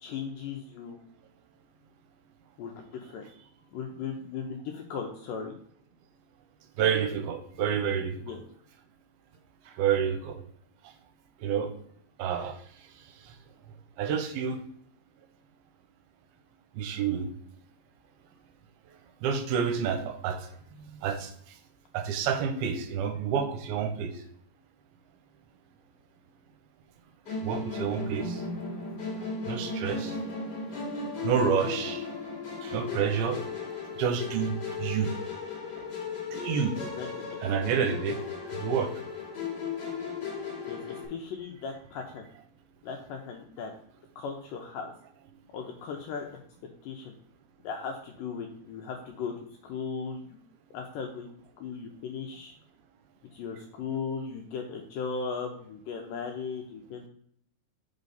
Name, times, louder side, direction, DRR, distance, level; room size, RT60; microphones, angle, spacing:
voice 1, 0.0-1.0 2.6-3.3 3.7-5.6 8.2-8.4 36.8-37.2 40.7-42.2 42.8-43.7 44.2-44.9 45.5-46.3 46.8-47.1 47.6-49.3 49.6-50.2 50.7-51.3 51.6-52.5 53.3-57.1, left 5 dB, 85° left, 2 dB, 2.0 m, -37 dB
voice 2, 6.8-8.4 9.8-10.4 11.4-11.7 12.2-12.6 13.3-13.4 14.0-14.6 16.8-17.3 19.2-20.5 20.9-21.3 21.9-24.1 27.4-28.4 29.5-30.2 31.2-32.1 32.6-33.4 34.0-35.1 35.8-35.9 36.3-36.8 37.4-38.2 38.6-38.9, right 7 dB, 85° right, 7 dB, 2.5 m, -29 dB
Musical instrument, 27.3-41.1, left 4 dB, 45° left, 1.3 m, -36 dB
5.6 x 5.2 x 4.0 m, 0.67 s
omnidirectional pair, 4.5 m